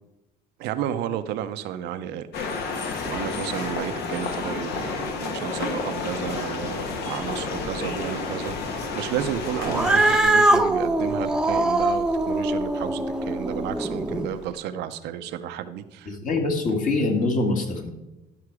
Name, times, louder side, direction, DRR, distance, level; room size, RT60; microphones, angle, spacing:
voice 1, 0.6-2.3 3.0-16.2, right 10 dB, 85° right, 0.7 m, -32 dB
sound 1, 2.3-10.2, left 4 dB, 75° left, 1.3 m, -30 dB
Cat, 9.6-14.3, right 2 dB, 5° right, 0.7 m, -22 dB
voice 2, 16.1-17.9, left 3 dB, 50° left, 2.0 m, -24 dB
12.5 x 5.8 x 4.8 m
cardioid pair, 110°, 17 cm